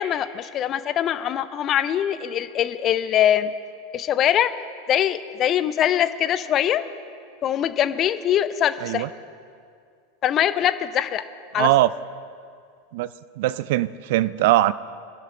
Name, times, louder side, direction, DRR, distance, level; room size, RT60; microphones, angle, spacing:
voice 1, 0.0-3.5 3.9-4.5 4.9-6.8 7.4-9.0 10.2-11.2 11.5-11.7, left 10 dB, 35° left, 13 dB, 0.5 m, -22 dB
voice 2, 11.5-11.9 12.9-13.1 13.4-14.7, right 15 dB, 55° right, 18 dB, 0.3 m, -20 dB
21.5 x 11.5 x 3.3 m, 2.3 s
figure-of-eight pair, 85°, 0 cm